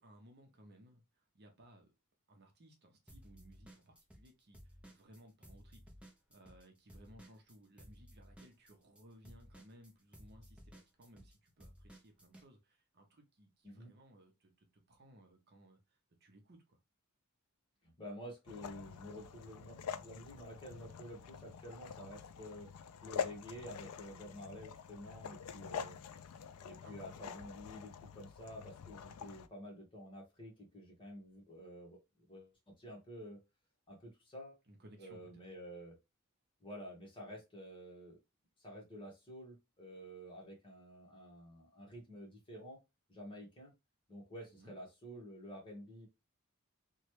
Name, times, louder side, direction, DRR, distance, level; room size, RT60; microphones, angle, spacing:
voice 1, 0.0-1.9 2.3-16.8 26.7-26.9 34.7-35.4 44.5-44.8, right 1 dB, 50° right, 0.7 m, -61 dB
sound 1, 3.1-4.3 4.5-12.5, equal, 5° right, 0.6 m, -57 dB
voice 2, 17.8-32.0 32.3-33.4 33.9-34.5 35.0-36.0 36.6-38.2 38.6-42.8 43.1-43.7 44.1-46.1, equal, 25° left, 1.2 m, -50 dB
sound 2, 18.5-29.5, left 7 dB, 90° left, 0.3 m, -46 dB
3.0 x 2.2 x 3.0 m
head